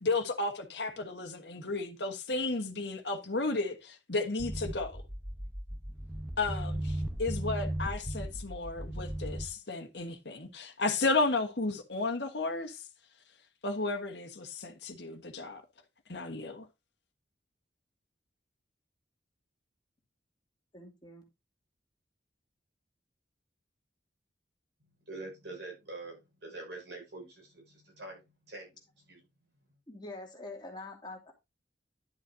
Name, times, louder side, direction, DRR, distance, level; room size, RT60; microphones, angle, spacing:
voice 1, 0.0-5.0 6.4-12.8 13.6-15.6 16.1-16.6, left 3 dB, 65° left, 1.4 m, -33 dB
sound 1, 4.4-9.5, right 1 dB, 5° right, 0.9 m, -36 dB
voice 2, 20.7-21.3 29.9-31.3, left 2 dB, 25° left, 2.5 m, -45 dB
voice 3, 25.1-28.7 29.1-29.2, right 2 dB, 65° right, 6.3 m, -45 dB
11.0 x 7.3 x 2.7 m
head